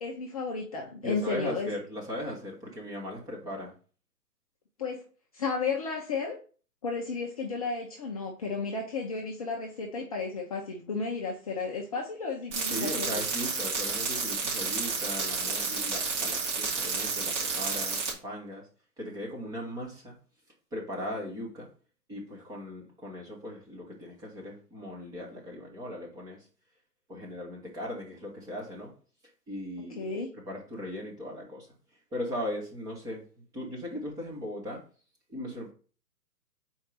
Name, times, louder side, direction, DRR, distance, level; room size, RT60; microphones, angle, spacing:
voice 1, 0.0-1.7 4.8-5.0 5.3-6.4 6.8-13.2 29.9-30.3, left 4 dB, 25° left, -2 dB, 0.6 m, -33 dB
voice 2, 1.0-3.7 12.7-18.7 19.0-20.1 20.7-21.7 22.1-26.4 27.1-28.9 29.5-30.1 30.5-31.7 32.1-33.2 33.5-34.8 35.3-35.7, left 1 dB, 10° right, -2 dB, 0.9 m, -38 dB
sound 1, 12.5-18.1, right 4 dB, 45° right, 2.4 m, -31 dB
4.5 x 4.5 x 5.1 m, 0.39 s
hypercardioid pair, 140°, 48 cm